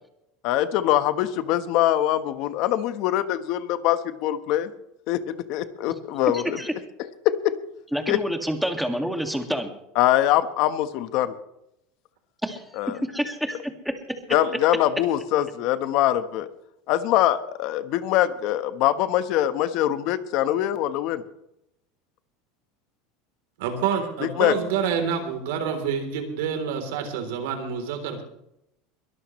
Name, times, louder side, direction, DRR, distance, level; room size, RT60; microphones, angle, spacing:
voice 1, 0.4-4.7 5.1-6.6 7.2-7.5 8.1-8.2 10.0-11.3 12.8-13.0 14.3-16.5 16.9-21.2 24.2-24.5, left 13 dB, 60° left, 11 dB, 1.2 m, -23 dB
voice 2, 6.3-6.7 7.9-9.7 12.4-12.6 13.1-13.9, equal, ahead, 4 dB, 2.1 m, -28 dB
voice 3, 23.6-28.2, right 7 dB, 80° right, 6 dB, 3.5 m, -27 dB
22.5 x 13.0 x 3.2 m, 0.81 s
supercardioid pair, 130°, 0 cm